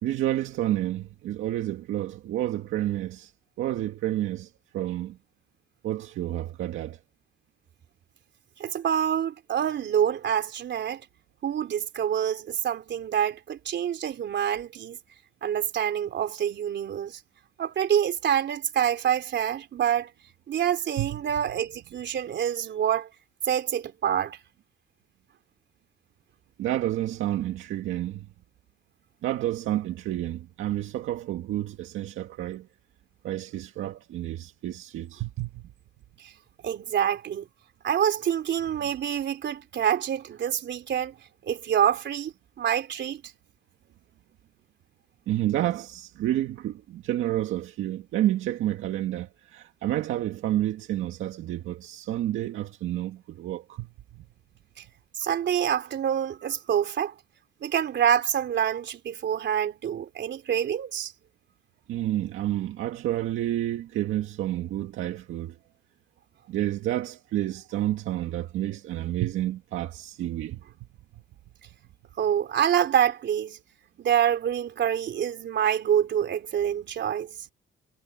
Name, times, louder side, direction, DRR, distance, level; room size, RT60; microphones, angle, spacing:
voice 1, 0.0-3.3 3.6-5.2 5.8-7.0 21.0-21.1 26.6-28.3 29.2-32.7 33.2-35.6 45.3-53.9 61.9-65.6 66.5-70.6, right 13 dB, 85° right, 2.0 m, -29 dB
voice 2, 8.6-11.0 11.4-15.0 15.4-17.2 17.6-20.1 20.5-23.1 23.4-24.4 36.2-36.3 36.6-37.5 37.8-41.1 41.5-43.2 55.2-57.1 57.6-61.1 72.2-73.6 74.0-77.3, right 9 dB, 65° right, 3.4 m, -26 dB
cardioid pair, 90°, 20 cm